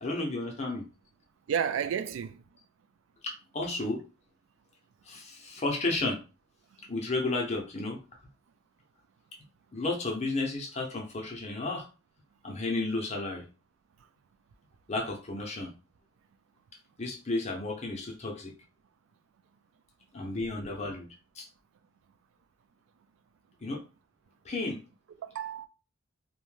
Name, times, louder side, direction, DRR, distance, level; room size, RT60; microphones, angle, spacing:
voice 1, 0.0-0.9 3.2-4.0 5.1-6.2 6.9-8.0 9.7-11.9 12.4-13.5 14.9-15.7 17.0-18.5 20.1-21.1 21.4-21.5 23.6-23.8 24.4-24.8, left 2 dB, 35° left, 0.6 m, -32 dB
voice 2, 1.5-2.6 6.8-6.9 25.2-25.7, right 8 dB, 80° right, 0.3 m, -32 dB
2.7 x 2.1 x 3.1 m
head